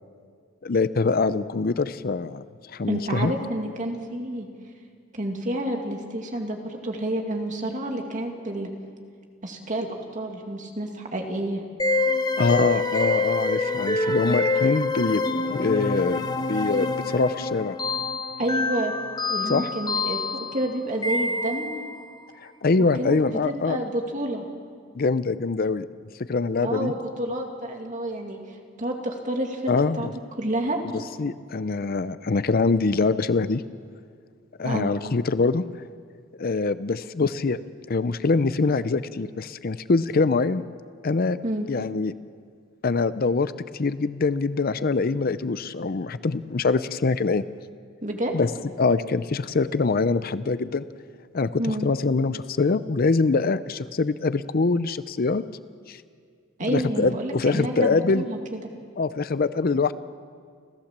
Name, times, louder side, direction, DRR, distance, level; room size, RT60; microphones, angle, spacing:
voice 1, 0.6-2.4 2.7-3.3 12.4-15.2 15.5-17.8 19.5-19.7 22.4-23.8 25.0-25.9 26.2-26.9 29.7-30.1 31.2-33.6 34.6-35.6 36.4-37.6 37.9-40.6 41.0-41.4 41.7-42.1 42.8-47.4 48.3-48.5 48.8-50.9 51.3-55.4 55.9-56.0 56.7-58.3 59.0-59.9, left 4 dB, 50° left, 14 dB, 0.5 m, -24 dB
voice 2, 2.9-4.5 5.1-8.7 9.4-11.6 18.4-18.9 19.3-21.7 23.0-24.4 26.6-28.4 28.8-30.1 30.4-30.8 34.6-34.9 41.4-41.7 48.0-48.3 51.6-51.9 56.6-58.6, right 1 dB, 40° right, 2 dB, 2.4 m, -29 dB
sound 1, 11.8-22.0, left 3 dB, 20° left, 1.0 m, -26 dB
29.5 x 15.0 x 7.4 m, 2.1 s
head